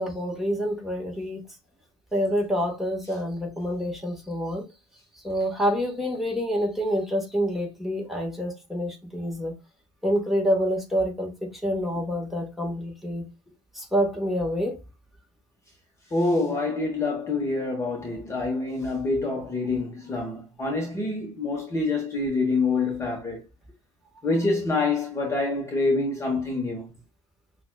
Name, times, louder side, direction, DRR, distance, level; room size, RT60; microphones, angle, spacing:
voice 1, 0.0-1.4 2.1-4.6 5.2-9.5 10.0-11.3 11.6-13.2 13.7-14.8, equal, ahead, 1.4 m, -27 dB
voice 2, 16.1-23.4 24.2-26.8, left 3 dB, 20° left, 1.1 m, -26 dB
5.8 x 2.4 x 2.2 m
supercardioid pair, 110°, 14 cm